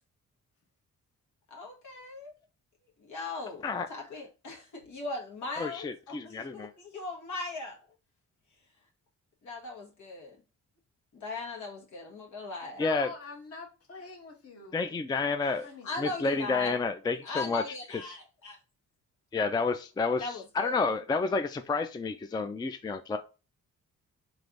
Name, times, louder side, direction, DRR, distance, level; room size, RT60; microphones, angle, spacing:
voice 1, 1.5-2.3 3.0-7.8 9.4-10.4 11.1-12.8 15.8-16.8 17.2-18.6 20.2-20.9, left 3 dB, 85° left, 1.7 m, -39 dB
voice 2, 5.6-6.7 12.8-13.1 14.7-15.7 16.0-17.6 19.3-20.2 20.6-23.2, left 4 dB, 15° left, 0.3 m, -30 dB
voice 3, 12.6-14.8 15.3-16.0, left 3 dB, 50° left, 1.4 m, -45 dB
3.4 x 3.2 x 3.9 m
cardioid pair, 120°, 29 cm